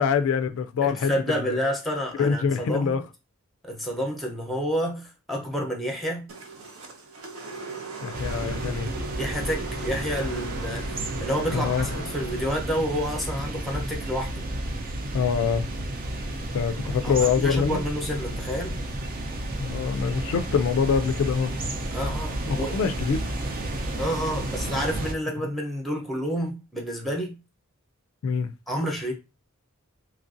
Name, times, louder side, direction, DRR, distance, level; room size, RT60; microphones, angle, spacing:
voice 1, 0.0-1.6 2.2-3.0 8.0-8.9 11.5-11.9 15.1-15.7 16.5-17.8 19.6-21.5 22.5-23.3 28.2-28.5, left 6 dB, 70° left, 0.3 m, -25 dB
voice 2, 0.8-3.0 3.6-6.3 9.2-10.8 11.2-14.4 17.0-18.7 21.9-22.8 23.9-27.4 28.7-29.1, equal, ahead, 0.7 m, -29 dB
sound 1, 6.3-14.6, right 4 dB, 80° right, 0.7 m, -39 dB
sound 2, 8.1-25.1, right 1 dB, 45° right, 0.5 m, -32 dB
3.0 x 2.5 x 2.5 m
head